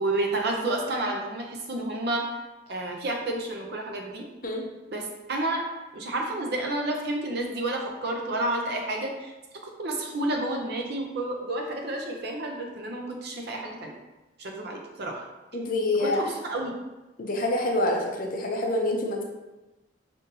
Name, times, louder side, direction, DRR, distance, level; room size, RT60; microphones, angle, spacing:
voice 1, 0.0-2.2 2.7-4.3 4.9-5.6 5.9-9.3 9.8-14.0 14.4-15.2 16.0-16.7, right 2 dB, 55° right, 1 dB, 0.6 m, -30 dB
voice 2, 15.5-16.3 17.2-19.2, left 1 dB, 45° left, 1 dB, 0.6 m, -26 dB
5.3 x 2.6 x 2.7 m, 1.1 s
head